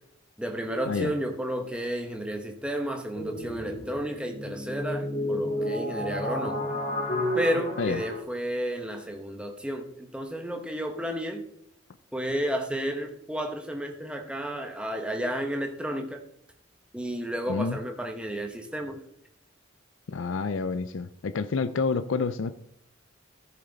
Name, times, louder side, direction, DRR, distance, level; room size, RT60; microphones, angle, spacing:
voice 1, 0.4-6.6 7.3-11.4 12.1-16.2 16.9-19.0, equal, 5° right, 4 dB, 1.0 m, -32 dB
sound 1, 3.1-8.2, equal, 40° left, 2.5 m, -31 dB
voice 2, 17.5-17.8 20.1-22.6, left 4 dB, 70° left, 11 dB, 0.5 m, -28 dB
13.5 x 7.2 x 4.0 m, 0.75 s
head